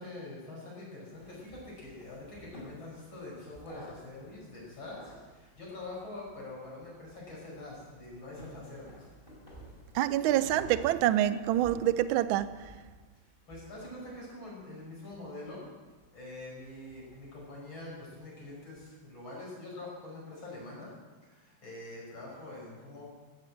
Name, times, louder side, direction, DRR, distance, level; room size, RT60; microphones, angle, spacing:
voice 1, 0.0-9.1 13.5-15.6 16.1-20.9 21.2-23.1, left 2 dB, 75° left, 6.6 m, -45 dB
sound 1, 1.1-19.0, right 1 dB, 25° left, 4.6 m, -53 dB
voice 2, 9.9-12.6, right 12 dB, 80° right, 1.4 m, -26 dB
15.5 x 8.3 x 7.9 m
omnidirectional pair, 2.2 m